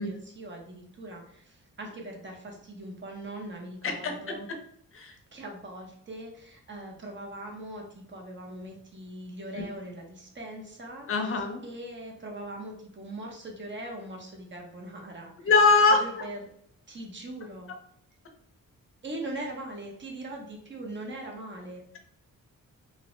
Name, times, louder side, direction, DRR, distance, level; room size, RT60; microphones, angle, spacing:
voice 1, 0.0-4.5 5.3-15.5 15.9-16.4 16.9-17.7 19.0-21.8, right 1 dB, 35° right, 1 dB, 0.7 m, -41 dB
voice 2, 3.8-4.3 4.9-5.1 9.6-9.7 11.1-11.6 15.5-16.0, left 4 dB, 40° left, 4 dB, 0.5 m, -22 dB
2.7 x 2.0 x 3.0 m, 0.66 s
wide cardioid pair, 135°, 33 cm